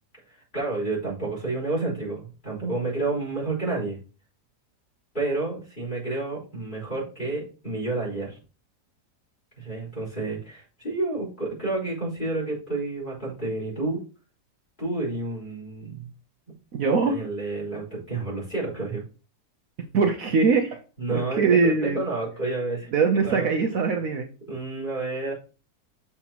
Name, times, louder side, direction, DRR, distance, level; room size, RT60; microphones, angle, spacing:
voice 1, 0.3-4.0 5.1-8.4 9.6-14.0 14.8-16.1 17.1-19.0 21.0-22.9 23.2-23.5 24.5-25.3, right 2 dB, 25° left, -4 dB, 4.4 m, -30 dB
voice 2, 16.7-17.2 19.9-20.8 21.1-22.0 22.9-24.3, right 4 dB, 60° right, 3 dB, 1.1 m, -22 dB
7.0 x 6.0 x 3.0 m, 0.35 s
omnidirectional pair, 1.8 m